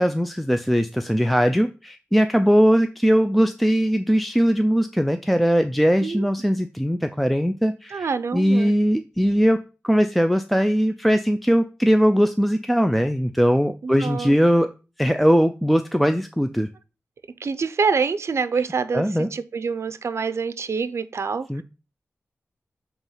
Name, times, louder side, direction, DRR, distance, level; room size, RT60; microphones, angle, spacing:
voice 1, 0.0-9.6 9.8-14.7 15.0-16.7 18.9-19.3 21.5-21.6, equal, ahead, 0.4 m, -20 dB
voice 2, 6.0-6.3 7.9-8.7 13.8-14.4 17.4-21.6, right 5 dB, 65° right, 0.5 m, -26 dB
7.1 x 3.0 x 5.5 m
wide cardioid pair, 75°, 5 cm